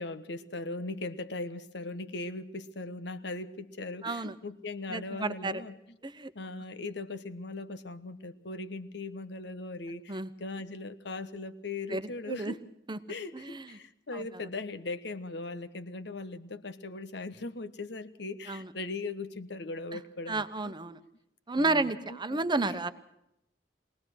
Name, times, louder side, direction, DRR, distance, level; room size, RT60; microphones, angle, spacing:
voice 1, 0.0-5.8 6.3-12.6 13.1-20.7 21.6-22.7, left 3 dB, 65° left, 11 dB, 1.3 m, -39 dB
voice 2, 4.0-4.3 4.9-5.6 6.0-6.3 10.1-10.3 11.9-12.5 12.9-13.0 13.3-13.8 14.1-14.2 18.5-18.7 20.3-21.0 21.5-22.9, right 3 dB, 25° right, 11 dB, 1.0 m, -31 dB
22.5 x 19.0 x 6.3 m, 0.81 s
head